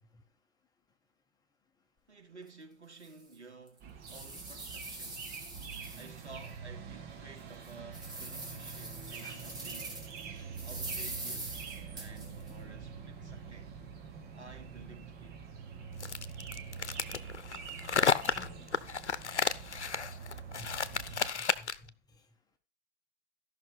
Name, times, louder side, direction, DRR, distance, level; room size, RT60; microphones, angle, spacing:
voice 1, 2.1-5.3 5.9-10.1 10.6-13.7 14.3-15.5, right 3 dB, 85° right, 2.8 m, -53 dB
sound 1, 2.4-2.5 3.0-3.1 3.7-6.5 6.9-7.0 7.5-10.2 10.6-12.5, right 2 dB, 10° right, 2.7 m, -43 dB
sound 2, 3.8-21.3, right 6 dB, 30° right, 1.8 m, -45 dB
sound 3, 16.0-21.9, left 6 dB, 80° left, 0.8 m, -32 dB
voice 2, 18.3-18.7 20.6-21.9, left 1 dB, 10° left, 1.5 m, -52 dB
14.0 x 5.8 x 5.1 m
figure-of-eight pair, 110°, 34 cm